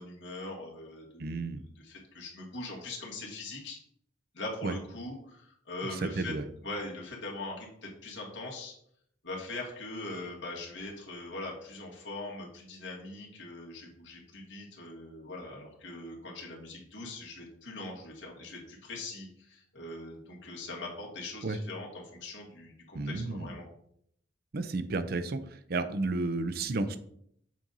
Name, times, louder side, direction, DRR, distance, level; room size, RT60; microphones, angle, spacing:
voice 1, 0.0-1.5 1.8-3.8 4.3-6.3 6.6-8.7 9.2-23.7, left 2 dB, 75° left, -2 dB, 1.7 m, -41 dB
voice 2, 1.2-1.6 4.6-4.7 5.9-6.4 21.4-21.6 22.9-23.5 24.5-27.0, right 3 dB, 55° right, 11 dB, 0.5 m, -32 dB
7.3 x 2.6 x 5.4 m, 0.69 s
head